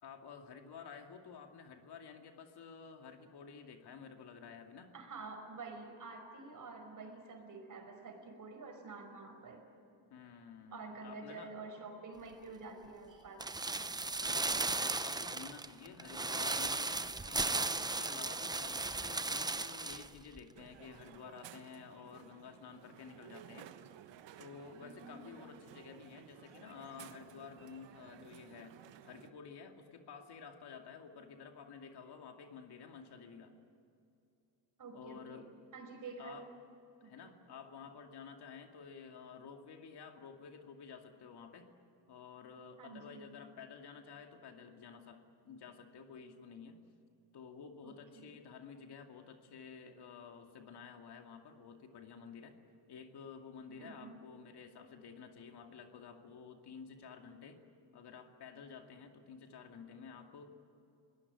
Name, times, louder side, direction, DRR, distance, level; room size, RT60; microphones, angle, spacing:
voice 1, 0.0-4.9 10.1-11.5 14.2-23.7 24.4-28.8 29.0-33.5 34.9-35.5 36.2-36.4 37.0-41.7 42.1-46.8 47.3-52.6 52.9-57.6 57.9-60.5, left 6 dB, 60° left, 4 dB, 2.4 m, -52 dB
voice 2, 4.9-9.6 10.7-13.4 24.8-25.2 34.8-36.4 37.0-37.3 42.8-43.3 47.8-48.4 53.8-54.2, right 3 dB, 45° right, 5 dB, 5.1 m, -49 dB
sound 1, 13.4-20.1 20.4-20.5, right 3 dB, 10° right, 0.6 m, -36 dB
Crowd, 20.5-29.3, right 10 dB, 75° right, 1.3 m, -56 dB
22.5 x 18.0 x 9.8 m, 2.6 s
cardioid pair, 110°, 44 cm